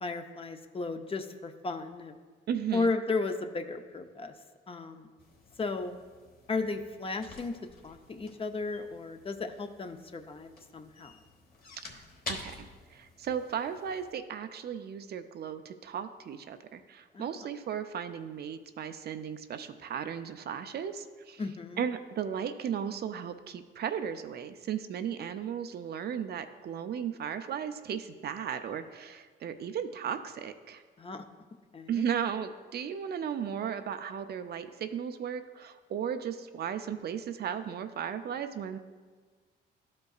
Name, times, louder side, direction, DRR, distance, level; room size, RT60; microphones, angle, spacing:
voice 1, 0.0-2.1 2.7-4.3 4.7-5.1 5.6-5.9 6.5-7.5 7.8-11.1 17.1-17.3 21.4-21.8 31.0-31.2 31.7-32.0, left 3 dB, 30° left, 7 dB, 0.5 m, -34 dB
voice 2, 2.5-3.0 11.8-12.0 12.3-21.4 21.8-30.8 31.9-38.8, right 8 dB, 55° right, 9 dB, 0.5 m, -35 dB
sound 1, 5.2-14.1, left 3 dB, 50° left, 1.3 m, -48 dB
12.5 x 5.3 x 2.4 m, 1.5 s
cardioid pair, 90°, 20 cm